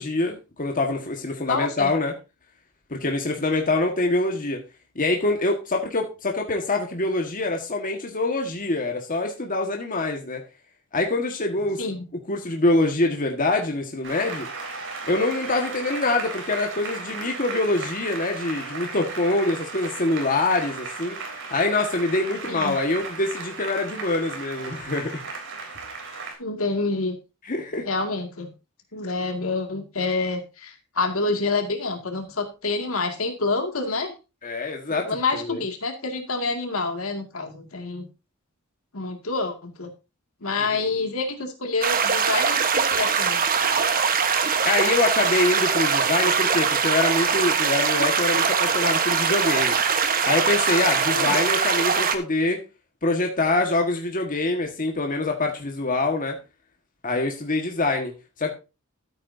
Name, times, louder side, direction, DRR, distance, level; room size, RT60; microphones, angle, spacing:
voice 1, 0.0-2.1 2.9-4.6 4.9-10.4 10.9-11.8 12.3-14.5 15.1-21.2 21.5-25.2 27.4-27.9 34.4-35.6 40.6-40.7 44.6-49.8 50.3-52.6 53.0-56.4 57.0-58.5, left 2 dB, 40° left, 2 dB, 1.7 m, -25 dB
voice 2, 1.5-1.9 11.8-12.0 22.5-22.8 26.4-27.2 27.9-28.5 28.9-34.1 34.9-38.1 38.9-39.9 40.4-43.4 51.0-51.3, left 3 dB, 70° left, 5 dB, 2.2 m, -27 dB
Applause, 14.0-26.3, right 4 dB, 60° right, 3.4 m, -36 dB
sound 1, 41.8-52.2, right 6 dB, 40° right, 1.2 m, -22 dB
13.5 x 8.9 x 2.7 m, 0.29 s
head